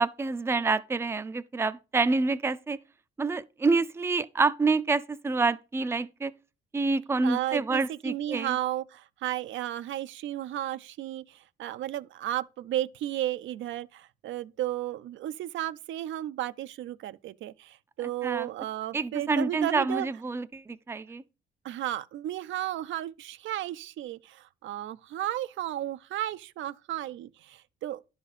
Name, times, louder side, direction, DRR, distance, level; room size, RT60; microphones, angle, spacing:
voice 1, 0.0-2.8 3.2-6.3 6.7-8.6 18.2-18.5 18.9-21.2, right 3 dB, 10° right, 0.4 m, -27 dB
voice 2, 7.2-20.1 21.6-28.1, right 13 dB, 75° right, 0.4 m, -34 dB
10.5 x 4.0 x 4.9 m
cardioid pair, 90°, 20 cm